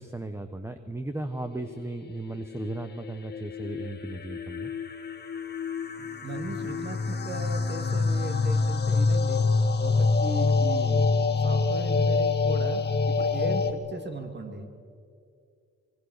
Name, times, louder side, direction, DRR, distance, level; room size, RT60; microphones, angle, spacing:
voice 1, 0.0-4.7, right 2 dB, 10° right, 8 dB, 1.2 m, -36 dB
sound 1, 2.3-13.7, left 4 dB, 35° left, 1.9 m, -26 dB
voice 2, 6.0-9.4 9.8-14.7, right 2 dB, 35° right, 5 dB, 3.1 m, -37 dB
25.5 x 21.5 x 6.7 m, 2.4 s
cardioid pair, 90°, 30 cm